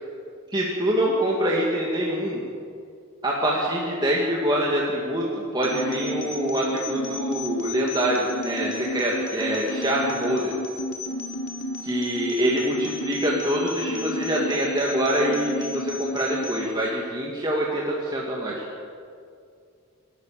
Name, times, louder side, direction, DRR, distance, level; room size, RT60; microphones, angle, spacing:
voice 1, 0.5-2.4 3.2-10.5 11.8-18.6, right 1 dB, 20° right, -4 dB, 2.4 m, -25 dB
sound 1, 5.6-16.7, left 1 dB, 75° left, 2.7 m, -32 dB
27.5 x 12.5 x 7.8 m, 2.3 s
head